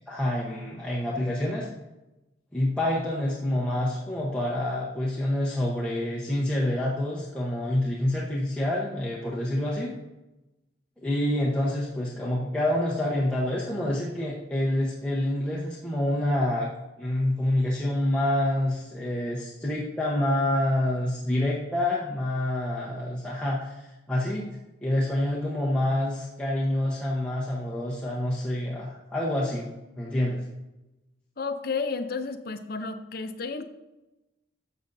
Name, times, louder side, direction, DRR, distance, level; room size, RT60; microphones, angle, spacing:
voice 1, 0.1-1.7 2.5-9.9 11.0-16.7 17.0-24.5 24.8-29.7 30.0-30.4, left 1 dB, 5° left, -7 dB, 1.0 m, -27 dB
voice 2, 31.4-33.7, left 4 dB, 50° left, 8 dB, 0.6 m, -32 dB
12.0 x 7.1 x 2.7 m, 1.0 s
head